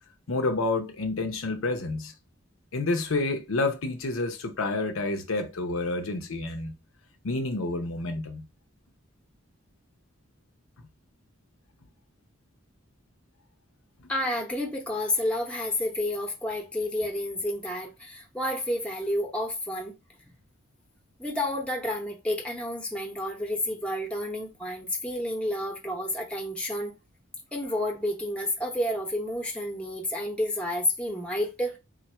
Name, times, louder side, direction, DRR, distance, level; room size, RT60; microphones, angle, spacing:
voice 1, 0.3-2.1 2.7-6.7 7.2-8.4, left 2 dB, 80° left, 0.7 m, -29 dB
voice 2, 14.1-19.9 21.2-26.9 27.5-31.8, left 1 dB, 5° left, 0.8 m, -30 dB
3.8 x 2.4 x 4.2 m
head